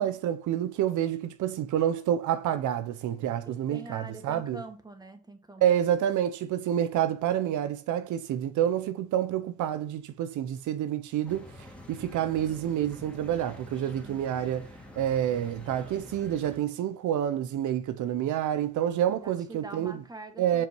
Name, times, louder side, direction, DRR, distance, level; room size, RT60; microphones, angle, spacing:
voice 1, 0.0-4.6 5.6-11.5 11.9-14.7 15.0-20.0 20.4-20.7, right 10 dB, 75° right, 0.7 m, -28 dB
voice 2, 3.4-5.6 14.0-14.3 19.2-20.7, right 2 dB, 15° right, 1.7 m, -44 dB
sound 1, 11.3-16.6, left 1 dB, 5° left, 2.2 m, -47 dB
7.3 x 5.4 x 4.5 m
cardioid pair, 90°, 30 cm